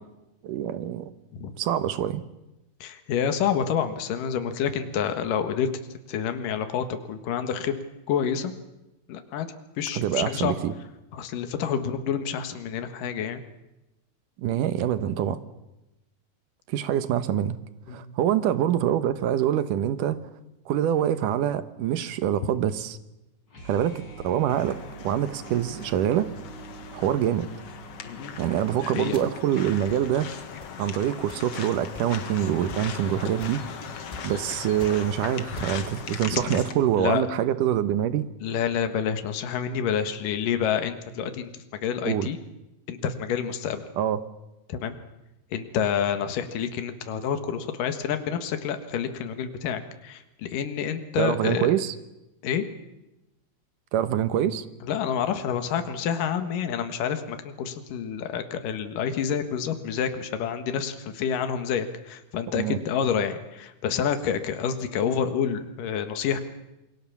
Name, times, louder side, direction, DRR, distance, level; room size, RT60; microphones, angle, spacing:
voice 1, 0.4-1.1 1.6-2.2 9.9-10.7 14.4-15.4 16.7-17.6 17.9-20.2 20.7-23.0 23.7-24.8 25.0-26.3 26.9-27.5 28.4-30.3 30.8-33.6 34.2-38.3 42.0-42.3 44.0-44.2 51.2-52.0 53.9-54.6 62.5-62.8, right 10 dB, 75° right, 13 dB, 2.6 m, -25 dB
voice 2, 2.8-5.7 6.1-7.8 8.1-8.5 9.1-9.5 9.8-10.6 11.1-13.4 17.9-18.2 28.0-28.4 28.8-29.2 37.0-37.3 38.4-42.4 42.9-43.8 44.7-45.0 45.5-51.7 52.4-52.7 54.8-66.4, left 8 dB, 75° left, 8 dB, 3.2 m, -28 dB
sound 1, 23.5-29.6, right 4 dB, 30° left, 7.1 m, -45 dB
sound 2, 24.5-36.7, left 6 dB, 50° left, 2.4 m, -39 dB
sound 3, 28.4-28.6 29.1-29.4 29.9-30.1 30.6-30.8 31.3-31.5 31.9-32.3 32.7-32.8 33.4-33.7 34.1-34.3 34.6-35.1 35.5-35.9, equal, 10° left, 3.7 m, -43 dB
28.0 x 22.5 x 7.2 m, 0.96 s
omnidirectional pair, 3.9 m